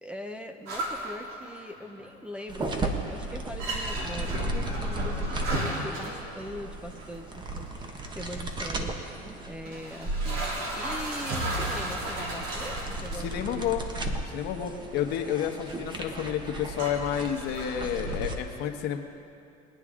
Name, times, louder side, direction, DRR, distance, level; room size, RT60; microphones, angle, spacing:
voice 1, 0.0-10.4 10.8-13.7, equal, 5° right, 5 dB, 0.7 m, -41 dB
sound 1, 0.7-2.1 2.4-2.9 3.2-3.3 3.6-7.1 8.0-8.1 8.9-9.0 9.7-13.4 13.8-14.1 14.9-15.0 16.3-16.4 16.8-18.2, right 1 dB, 75° right, 3.1 m, -34 dB
sound 2, 2.5-18.3, right 2 dB, 25° right, 1.2 m, -35 dB
voice 2, 13.2-13.8 14.3-19.0, left 9 dB, 60° left, 4 dB, 1.2 m, -30 dB
21.0 x 10.0 x 3.7 m, 2.7 s
cardioid pair, 125°, 19 cm